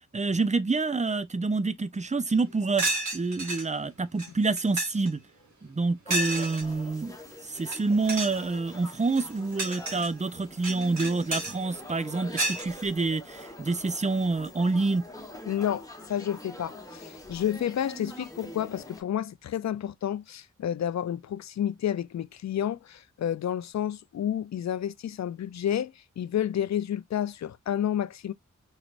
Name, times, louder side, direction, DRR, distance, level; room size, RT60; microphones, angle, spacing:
voice 1, 0.1-5.2 5.6-7.2 7.4-15.1, right 3 dB, 25° right, 0.6 m, -27 dB
sound 1, 2.3-2.4 2.8-3.6 4.2-4.3 4.6-5.1 6.1-6.6 7.6-7.8 8.1-8.4 9.0-10.1 10.6-11.5 12.4-12.6, right 2 dB, 65° right, 1.7 m, -30 dB
sound 2, 6.0-19.0, left 1 dB, 10° left, 1.2 m, -45 dB
voice 2, 15.5-28.3, left 10 dB, 60° left, 0.4 m, -30 dB
4.1 x 3.2 x 2.5 m
cardioid pair, 55°, 31 cm